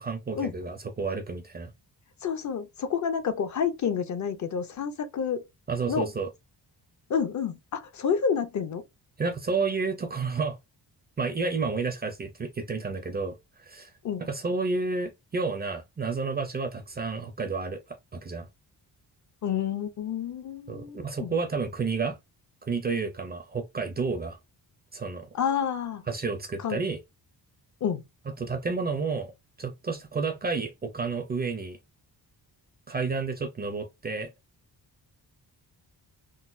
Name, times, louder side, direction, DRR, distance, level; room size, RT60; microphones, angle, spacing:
voice 1, 0.0-1.7 5.7-6.3 9.2-10.6 11.2-13.9 14.2-18.5 20.7-22.2 22.6-24.4 24.9-25.3 26.1-27.0 28.4-29.3 29.6-31.8 32.9-34.3, right 4 dB, 25° right, 0.4 m, -31 dB
voice 2, 2.2-5.4 5.9-6.1 7.1-8.8 14.0-14.2 19.4-21.3 25.3-26.0 26.6-26.8 27.8-28.0, left 7 dB, 45° left, 0.5 m, -29 dB
3.8 x 2.1 x 2.5 m
wide cardioid pair, 170°, 40 cm